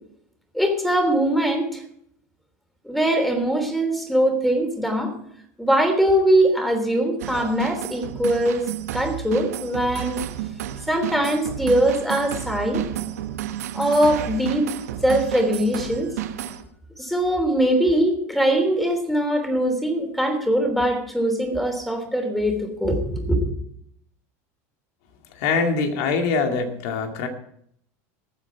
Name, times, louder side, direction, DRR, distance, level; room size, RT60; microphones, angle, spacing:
voice 1, 0.5-1.8 2.8-5.1 5.6-8.7 8.9-10.2 10.9-12.9 13.7-16.1 17.0-23.5, right 1 dB, ahead, 5 dB, 3.3 m, -22 dB
sound 1, 7.2-16.6, right 12 dB, 90° right, 1.3 m, -31 dB
voice 2, 25.3-27.3, left 4 dB, 65° left, 4 dB, 2.2 m, -23 dB
19.5 x 7.5 x 4.6 m, 0.69 s
supercardioid pair, 105°, 8 cm